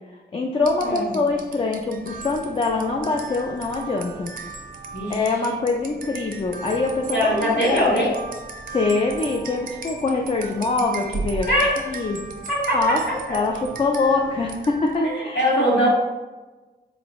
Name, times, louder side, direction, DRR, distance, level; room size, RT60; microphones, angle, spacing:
voice 1, 0.3-4.3 5.1-7.9 8.7-11.5 11.8-12.2 12.7-13.0 13.3-15.4, left 3 dB, 30° left, 1 dB, 0.4 m, -24 dB
sound 1, 0.6-15.1, right 4 dB, 50° right, 0.5 m, -36 dB
voice 2, 4.9-5.2 7.1-8.1 11.5-11.8 12.5-12.9 13.3-13.4 15.0-15.9, equal, 80° left, -9 dB, 1.4 m, -21 dB
4.1 x 2.6 x 2.9 m, 1.2 s
wide cardioid pair, 110°, 19 cm